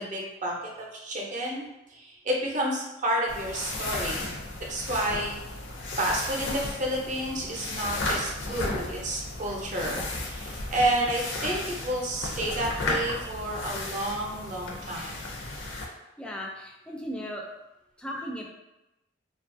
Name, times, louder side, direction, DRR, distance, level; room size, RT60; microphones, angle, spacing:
voice 1, 0.0-1.6 1.9-4.3 4.7-5.4 6.0-15.2, right 1 dB, 40° right, -2 dB, 0.6 m, -30 dB
sound 1, 3.3-15.9, left 2 dB, 85° left, 0.5 m, -34 dB
voice 2, 15.8-17.5 18.0-18.4, equal, 5° left, -1 dB, 0.3 m, -37 dB
2.6 x 2.3 x 2.5 m, 0.94 s
head